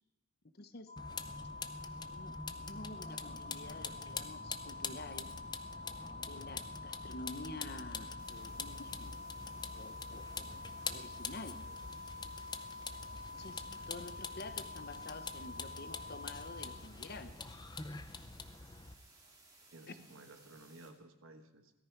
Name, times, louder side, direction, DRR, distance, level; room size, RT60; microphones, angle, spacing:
voice 1, 0.6-0.9 2.1-5.3 6.2-9.1 9.7-10.6 10.9-11.6 13.4-17.3 19.9-20.0, left 2 dB, 45° left, 10 dB, 0.9 m, -49 dB
sound 1, 0.9-16.7, left 3 dB, 85° right, 1.9 m, -48 dB
Vehicle, 1.0-18.9, left 4 dB, 20° left, 0.5 m, -45 dB
sound 2, 8.2-20.9, right 3 dB, 15° right, 2.2 m, -62 dB
voice 2, 19.7-21.7, right 2 dB, 65° right, 7 dB, 1.2 m, -55 dB
17.5 x 13.5 x 4.6 m, 1.1 s
head